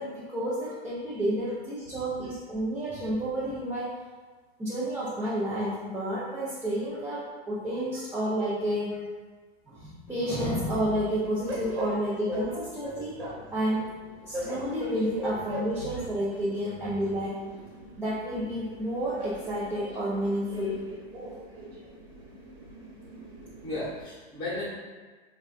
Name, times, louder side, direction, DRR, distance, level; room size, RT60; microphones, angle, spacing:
voice 1, 0.0-4.0 4.6-9.0 9.7-13.2 13.5-13.9 14.2-17.4 18.0-20.8, equal, 10° right, -10 dB, 0.4 m, -30 dB
Train, 10.1-24.0, right 1 dB, 75° right, 1.0 m, -40 dB
voice 2, 23.6-24.7, left 2 dB, 15° left, -8 dB, 0.9 m, -35 dB
3.3 x 2.2 x 2.4 m, 1.4 s
hypercardioid pair, 110°, 32 cm